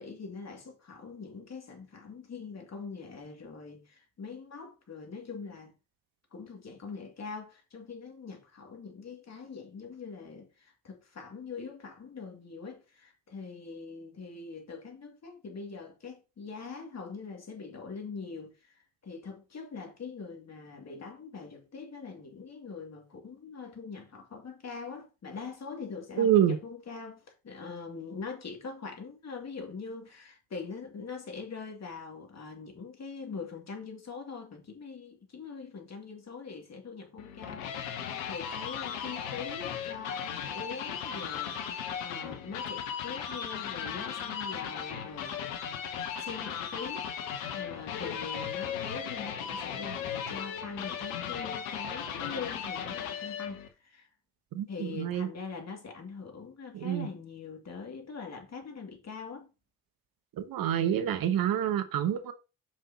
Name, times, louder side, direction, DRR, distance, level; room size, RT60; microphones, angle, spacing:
voice 1, 0.0-5.7 6.3-37.9 38.2-45.4 46.2-54.1 54.7-59.5, left 5 dB, 40° left, 2.6 m, -43 dB
voice 2, 26.2-26.6 54.5-55.3 56.7-57.1 60.4-62.3, right 10 dB, 60° right, 1.1 m, -27 dB
sound 1, 37.2-53.7, left 8 dB, 80° left, 1.1 m, -37 dB
7.4 x 5.7 x 2.9 m
hypercardioid pair, 50°, 39 cm